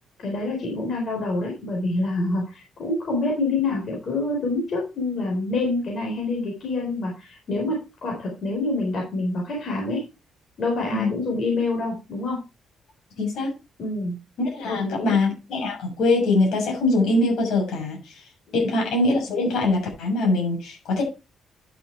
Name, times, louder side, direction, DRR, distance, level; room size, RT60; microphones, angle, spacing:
voice 1, 0.2-10.0 10.6-12.4 13.8-14.1 14.7-15.1 18.6-18.7, left 2 dB, 55° left, -1 dB, 4.1 m, -26 dB
voice 2, 13.2-13.5 14.4-18.0 18.5-21.0, left 2 dB, 75° left, 0 dB, 6.7 m, -23 dB
11.0 x 6.9 x 4.5 m, 0.28 s
cardioid pair, 90°, 0 cm